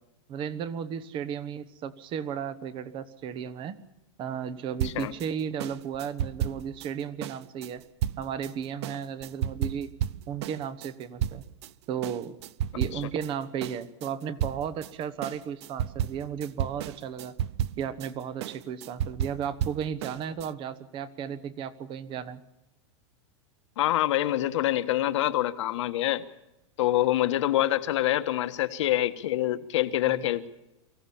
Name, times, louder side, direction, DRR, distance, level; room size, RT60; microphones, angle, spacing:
voice 1, 0.3-3.8 4.2-7.8 8.2-9.9 10.3-11.4 11.9-12.4 12.8-17.3 17.8-22.4 30.0-30.3, right 8 dB, 30° right, 15 dB, 1.3 m, -34 dB
sound 1, 4.8-11.7 12.0-13.3 13.6-20.5, right 11 dB, 60° right, 0.6 m, -33 dB
voice 2, 12.7-13.1 23.8-26.2 26.8-30.5, left 14 dB, 70° left, 10 dB, 1.4 m, -26 dB
24.0 x 15.5 x 7.2 m, 0.93 s
supercardioid pair, 140°, 16 cm